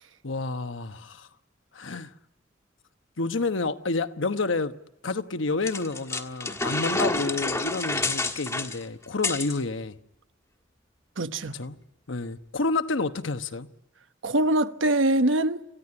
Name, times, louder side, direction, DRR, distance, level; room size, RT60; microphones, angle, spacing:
voice 1, 0.2-1.3 1.7-2.1 3.2-4.7 5.0-9.9 11.5-11.8 12.1-13.7, left 3 dB, 80° left, 1.1 m, -29 dB
sound 1, 5.7-9.6, left 2 dB, 15° left, 1.4 m, -29 dB
voice 2, 11.2-11.6 14.2-15.6, right 1 dB, 85° right, 1.1 m, -23 dB
27.5 x 15.5 x 9.9 m
head